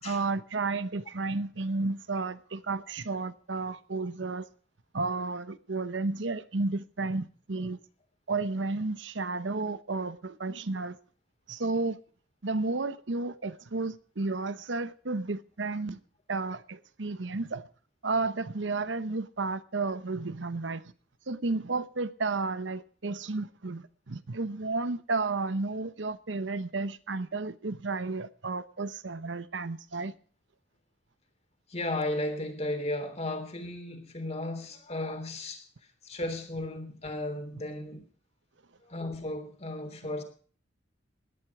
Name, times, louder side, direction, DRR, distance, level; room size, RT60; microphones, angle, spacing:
voice 1, 0.0-4.5 4.9-7.8 8.3-11.0 11.5-12.0 12.4-16.0 16.3-17.6 18.0-20.8 21.3-30.1, right 3 dB, 75° right, 0.9 m, -32 dB
voice 2, 31.7-35.7 36.0-38.0 38.8-40.2, left 1 dB, 35° left, 3.3 m, -35 dB
17.5 x 11.0 x 4.8 m
head